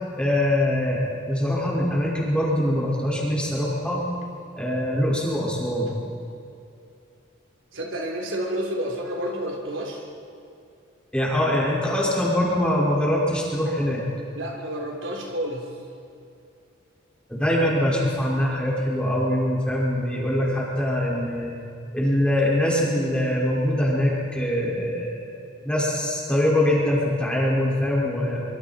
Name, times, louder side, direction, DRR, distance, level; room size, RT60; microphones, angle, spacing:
voice 1, 0.2-4.0 4.6-6.0 11.1-14.1 17.3-21.5 21.9-25.4 25.6-28.4, left 1 dB, 5° left, -5 dB, 5.2 m, -23 dB
voice 2, 7.7-10.1 14.3-15.7, equal, 80° right, 0 dB, 3.6 m, -30 dB
26.0 x 24.5 x 4.4 m, 2.6 s
head